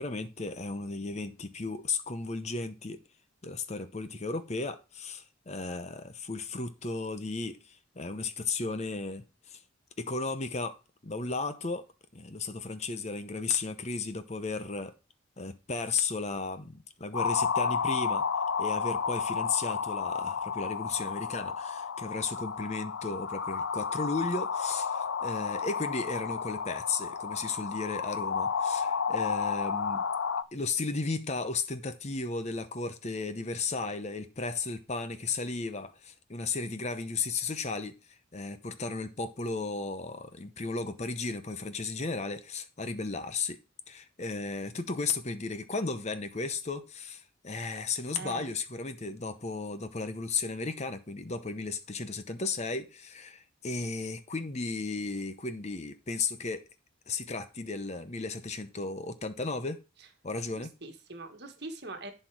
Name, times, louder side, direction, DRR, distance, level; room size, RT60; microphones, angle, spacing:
voice 1, 0.0-3.0 3.4-9.6 10.0-10.8 11.0-11.9 12.1-14.9 15.4-18.2 18.6-30.0 30.5-43.6 43.9-56.6 57.1-59.8 60.2-60.7, left 4 dB, 35° left, 0.8 m, -35 dB
sound 1, 17.1-30.4, left 6 dB, 75° left, 0.6 m, -32 dB
voice 2, 48.2-48.5 60.5-62.1, right 2 dB, 55° right, 1.5 m, -42 dB
11.0 x 4.5 x 4.7 m
head